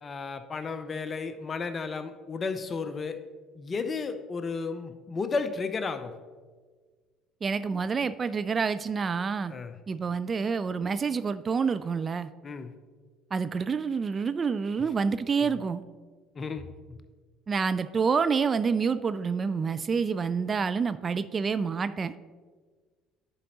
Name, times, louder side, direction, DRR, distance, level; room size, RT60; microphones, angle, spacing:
voice 1, 0.0-3.2 3.6-6.2 9.5-9.8 12.4-12.7 15.4-15.5 16.3-17.0, left 4 dB, 35° left, 10 dB, 0.6 m, -33 dB
voice 2, 7.4-9.5 9.9-12.3 13.3-15.8 17.5-22.1, right 5 dB, 35° right, 13 dB, 0.3 m, -28 dB
11.0 x 5.1 x 2.9 m, 1.5 s
hypercardioid pair, 60°, 0 cm